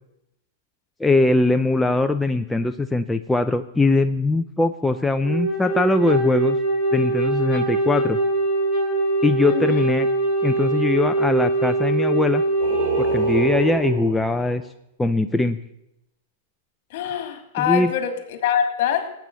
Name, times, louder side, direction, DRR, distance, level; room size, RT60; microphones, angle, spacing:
voice 1, 1.0-6.6 6.9-8.2 9.2-10.1 10.4-12.4 13.0-14.6 15.0-15.6 17.6-17.9, left 2 dB, 5° left, 7 dB, 0.5 m, -21 dB
Wind instrument woodwind instrument, 5.2-13.9, right 2 dB, 20° right, 7.8 m, -22 dB
voice 2, 9.5-9.8 16.9-19.1, left 9 dB, 55° left, 7 dB, 3.0 m, -24 dB
Singing, 12.6-14.6, right 3 dB, 45° right, 5.0 m, -31 dB
18.0 x 9.0 x 6.9 m, 0.81 s
hypercardioid pair, 140°, 0 cm